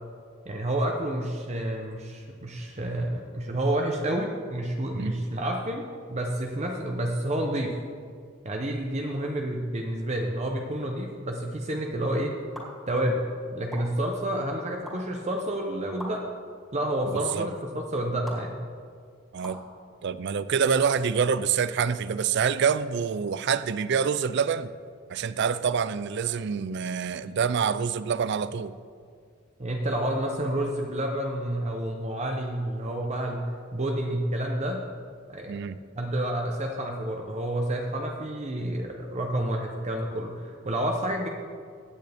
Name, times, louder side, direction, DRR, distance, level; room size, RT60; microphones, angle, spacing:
voice 1, 0.5-7.7 8.4-12.3 12.9-13.2 13.5-16.2 16.7-18.6 29.6-33.4 33.7-34.8 35.3-35.5 36.0-41.3, right 1 dB, 35° right, 1 dB, 0.8 m, -29 dB
sound 1, 12.5-12.6 13.7-13.8 14.8-14.9 16.0-16.1 17.1-17.2 18.3-18.4 19.4-19.6, equal, ahead, 2.3 m, -39 dB
voice 2, 17.1-17.5 19.3-19.6 20.0-24.7 25.1-28.7 35.5-35.8, right 6 dB, 60° right, 15 dB, 0.4 m, -26 dB
16.0 x 9.2 x 3.5 m, 2.1 s
head